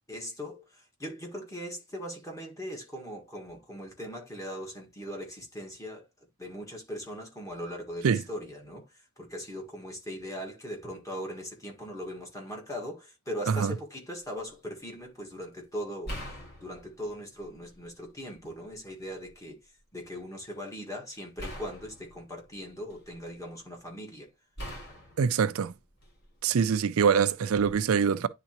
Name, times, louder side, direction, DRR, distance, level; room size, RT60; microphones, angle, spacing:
voice 1, 0.1-6.1 6.4-16.3 16.6-24.3, equal, 15° left, 1.7 m, -40 dB
sound 1, 14.2-14.5 16.0-17.9 18.4-19.3 21.4-23.3 24.6-26.4 27.5-27.7, equal, 50° left, 2.8 m, -43 dB
voice 2, 25.2-25.7 26.4-28.3, right 6 dB, 75° right, 0.4 m, -24 dB
10.0 x 3.8 x 2.9 m
head